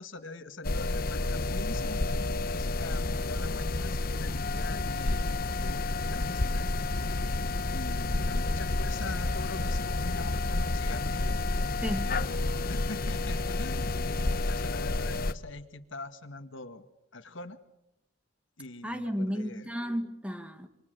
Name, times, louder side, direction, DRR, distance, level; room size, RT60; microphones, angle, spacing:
voice 1, 0.0-5.3 5.6-6.7 7.7-11.4 12.0-17.6 18.6-19.7, left 3 dB, 70° left, 1.8 m, -43 dB
sound 1, 0.6-15.3, left 2 dB, 45° left, 1.0 m, -30 dB
voice 2, 11.8-12.1 18.8-20.7, equal, 5° right, 1.7 m, -33 dB
28.0 x 25.5 x 6.8 m
head